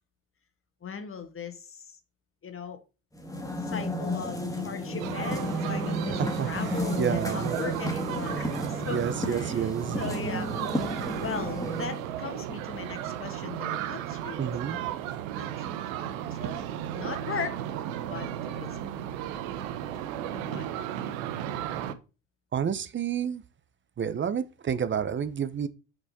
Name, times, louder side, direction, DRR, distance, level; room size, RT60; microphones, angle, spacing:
voice 1, 0.8-2.0 2.4-2.8 3.5-10.5 11.1-14.9 15.4-15.8 16.3-16.6 16.9-17.6 18.0-18.9 20.3-20.7, left 6 dB, 35° left, 1.7 m, -39 dB
sound 1, 3.1-12.1, equal, 10° left, 2.0 m, -32 dB
sound 2, 5.0-21.9, right 11 dB, 85° right, 0.9 m, -35 dB
voice 2, 6.2-6.5 7.0-7.6 8.9-10.0 14.4-14.8 22.5-23.4 24.0-25.7, right 8 dB, 30° right, 0.7 m, -29 dB
6.2 x 4.9 x 4.1 m
supercardioid pair, 80°, 39 cm